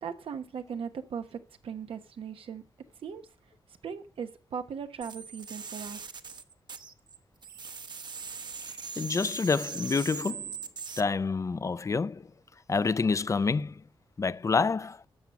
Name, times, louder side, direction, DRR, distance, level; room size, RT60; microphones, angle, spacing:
voice 1, 0.0-2.6 3.0-3.3 3.8-6.1, right 7 dB, 85° right, 1.1 m, -38 dB
sound 1, 5.0-7.2 7.4-11.0, right 5 dB, 50° right, 1.0 m, -40 dB
voice 2, 9.0-10.5 11.0-12.2 12.7-13.7 14.2-15.0, left 4 dB, 35° left, 0.4 m, -27 dB
11.5 x 7.0 x 6.1 m
cardioid pair, 85°, 9 cm